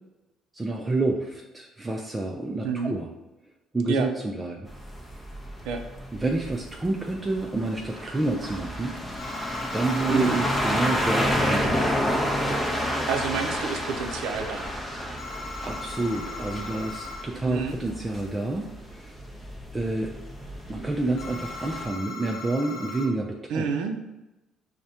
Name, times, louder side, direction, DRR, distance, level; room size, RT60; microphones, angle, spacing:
voice 1, 0.5-3.1 3.7-4.7 6.1-8.9 9.7-12.1 15.4-19.2 19.7-20.1 20.7-23.7, right 2 dB, 15° right, 0 dB, 0.3 m, -29 dB
sound 1, 4.7-21.8, equal, 15° left, 0.6 m, -30 dB
sound 2, 9.2-11.2 15.2-17.2 21.2-23.1, left 3 dB, 60° left, 0.6 m, -39 dB
voice 2, 10.1-10.5 13.1-14.7 17.5-17.8 23.5-23.9, right 5 dB, 85° right, 5 dB, 0.4 m, -28 dB
4.7 x 2.1 x 2.7 m, 1.0 s
cardioid pair, 110°, 0 cm